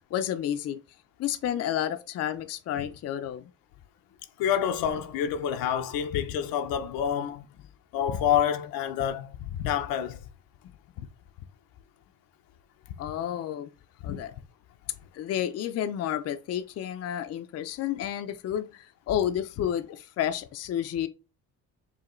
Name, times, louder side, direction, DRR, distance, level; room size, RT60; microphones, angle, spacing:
voice 1, 0.1-0.8 1.2-3.4 13.0-13.7 14.0-14.3 15.1-21.1, left 10 dB, 45° left, 0.5 m, -31 dB
voice 2, 4.4-7.5 7.9-10.2 14.0-14.2, left 9 dB, 80° left, 0.7 m, -28 dB
4.9 x 2.8 x 3.1 m
cardioid pair, 110°, 34 cm